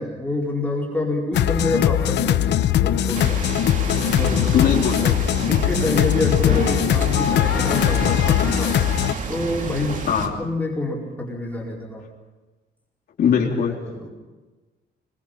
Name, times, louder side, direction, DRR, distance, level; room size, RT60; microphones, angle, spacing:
voice 1, 0.0-3.4 3.9-4.7 5.0-8.7 9.3-10.0 10.4-12.0 13.4-14.1, left 2 dB, 10° left, -3 dB, 4.8 m, -27 dB
sound 1, 1.3-9.1, left 11 dB, 80° left, 0.8 m, -20 dB
sound 2, 3.1-10.3, right 3 dB, 45° right, 2.6 m, -30 dB
voice 2, 4.5-5.1 10.1-10.3 13.2-13.7, left 7 dB, 60° left, -1 dB, 3.7 m, -20 dB
25.0 x 22.5 x 5.8 m, 1.2 s
wide cardioid pair, 175°, 18 cm